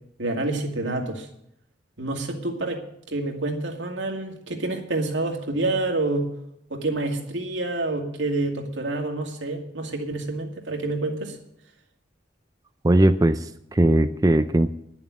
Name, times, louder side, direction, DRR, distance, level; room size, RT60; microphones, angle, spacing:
voice 1, 0.2-1.3 2.0-6.3 6.7-11.4, right 2 dB, 80° right, 2 dB, 2.3 m, -28 dB
voice 2, 12.8-14.7, right 1 dB, 20° right, 8 dB, 0.4 m, -19 dB
11.0 x 7.3 x 9.6 m, 0.75 s
head